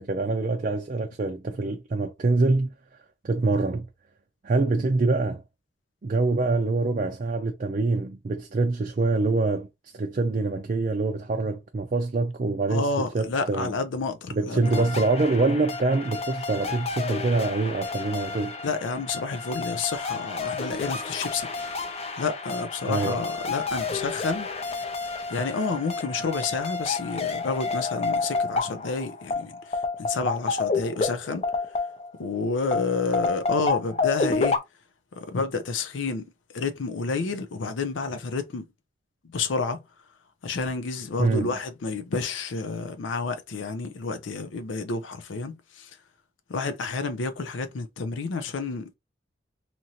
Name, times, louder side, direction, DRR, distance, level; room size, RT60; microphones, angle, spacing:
voice 1, 0.0-2.7 3.2-3.9 4.4-5.4 6.0-9.7 9.9-13.7 14.3-18.6 22.9-23.2 41.2-41.5, right 3 dB, 45° right, 0.4 m, -25 dB
voice 2, 12.7-14.9 18.6-21.7 22.2-24.5 25.3-31.4 32.2-34.6 35.2-36.2 36.5-38.6 39.3-39.8 40.4-45.9 46.5-48.9, left 4 dB, 85° left, 0.5 m, -30 dB
sound 1, 14.6-32.3 32.7-34.6, left 4 dB, 35° left, 0.5 m, -30 dB
2.9 x 2.6 x 2.8 m
head